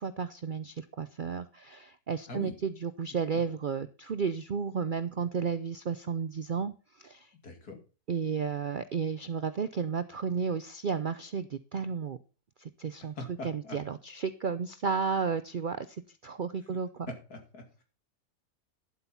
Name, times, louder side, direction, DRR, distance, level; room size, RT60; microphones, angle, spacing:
voice 1, 0.0-7.3 8.1-12.2 12.6-13.1 13.4-16.0 16.2-17.1, right 6 dB, 65° right, 13 dB, 0.5 m, -33 dB
voice 2, 7.4-7.8 13.2-13.8 17.1-17.8, left 2 dB, 80° left, 4 dB, 3.2 m, -41 dB
11.5 x 8.1 x 5.7 m, 0.35 s
omnidirectional pair, 1.6 m